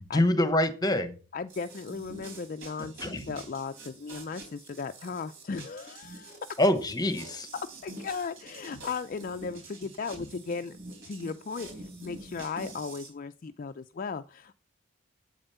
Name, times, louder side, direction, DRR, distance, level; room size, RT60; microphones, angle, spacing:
voice 1, 0.1-1.1 3.0-3.2 6.6-7.5, left 1 dB, 20° left, 11 dB, 1.0 m, -25 dB
voice 2, 1.3-6.4 7.8-10.8 11.0-14.6, left 5 dB, 40° left, 9 dB, 0.4 m, -36 dB
sound 1, 1.5-13.1, right 2 dB, 60° right, 4.0 m, -46 dB
8.8 x 8.0 x 5.6 m, 0.38 s
head